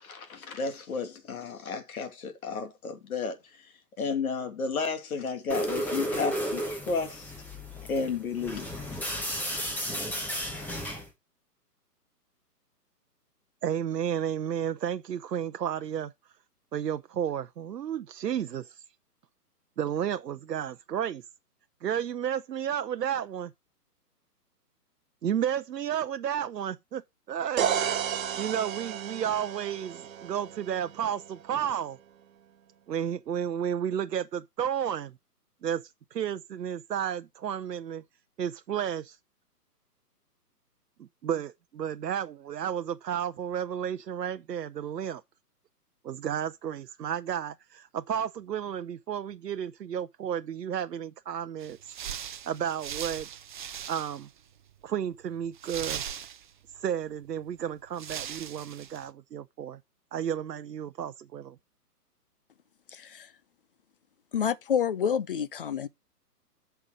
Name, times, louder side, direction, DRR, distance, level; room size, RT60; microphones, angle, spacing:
voice 1, 0.0-3.4 4.0-7.3 7.9-9.6, left 4 dB, 60° left, 2.6 m, -33 dB
sound 1, 5.5-11.1, equal, 5° left, 1.0 m, -33 dB
voice 2, 13.6-16.1 16.7-18.8 19.8-21.3 21.8-23.5 25.2-27.7 28.4-32.0 32.9-35.2 35.6-38.0 38.4-39.2 41.0-45.2 46.0-51.8 52.4-53.3 53.9-54.3 54.8-56.0 56.7-59.8 60.1-61.6, right 9 dB, 80° right, 0.7 m, -32 dB
sound 2, 27.6-31.4, right 8 dB, 55° right, 1.1 m, -32 dB
sound 3, 51.6-54.4 54.7-54.8 55.5-56.7 57.5-57.6 58.0-59.0, right 9 dB, 30° right, 0.6 m, -39 dB
voice 3, 62.9-63.3 64.3-65.9, left 8 dB, 35° left, 0.5 m, -28 dB
8.7 x 5.7 x 4.8 m
figure-of-eight pair, 135°, 48 cm